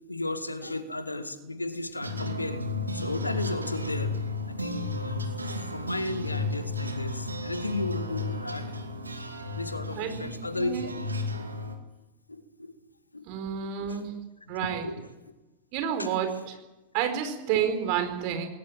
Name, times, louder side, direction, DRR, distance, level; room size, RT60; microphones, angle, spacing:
voice 1, 0.1-5.2 5.5-8.7 9.5-10.9 12.3-12.7 13.1-13.2 13.6-14.1 14.4-14.6 14.8-15.3 16.0-16.1 17.2-17.4, left 2 dB, 85° left, 10 dB, 2.0 m, -35 dB
sound 1, 2.0-11.8, left 2 dB, 80° right, 2.4 m, -33 dB
voice 2, 9.9-10.3 10.6-11.0 13.3-14.1 14.5-14.9 15.7-16.5 16.9-18.5, right 8 dB, 45° right, 7 dB, 4.6 m, -29 dB
20.0 x 19.0 x 9.0 m, 1.0 s
figure-of-eight pair, 90°, 0 cm